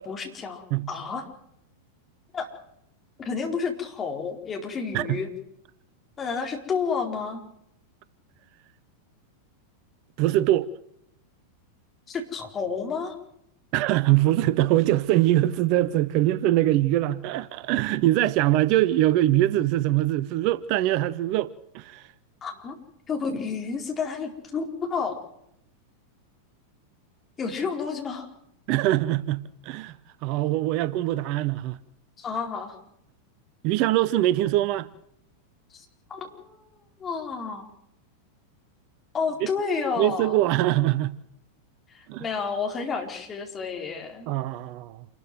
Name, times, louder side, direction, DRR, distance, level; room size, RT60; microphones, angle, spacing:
voice 1, 0.0-1.2 2.3-2.5 3.2-5.3 6.2-7.4 12.1-13.2 22.4-22.8 23.1-25.2 27.4-28.3 32.2-32.8 35.7-35.8 36.1-36.7 37.0-37.7 39.1-40.4 41.9-44.3, left 5 dB, 20° left, 4.5 m, -30 dB
voice 2, 10.2-10.7 13.7-22.1 28.7-30.0 30.2-31.8 33.6-34.9 39.4-39.5 40.0-41.1 42.1-42.2 44.3-45.0, right 15 dB, 45° right, 0.7 m, -23 dB
28.0 x 13.5 x 7.8 m
figure-of-eight pair, 90°, 0 cm